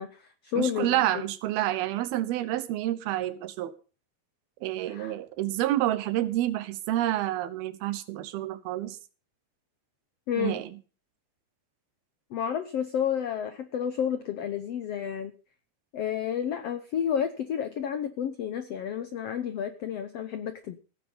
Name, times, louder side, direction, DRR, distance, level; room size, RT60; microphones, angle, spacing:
voice 1, 0.0-1.0 4.9-5.1 10.3-10.6 12.3-15.3 15.9-20.8, left 8 dB, 85° left, 10 dB, 1.4 m, -31 dB
voice 2, 0.6-3.7 4.6-9.0 10.4-10.8, right 14 dB, 85° right, 14 dB, 3.0 m, -29 dB
16.5 x 9.5 x 5.6 m, 0.37 s
omnidirectional pair, 4.3 m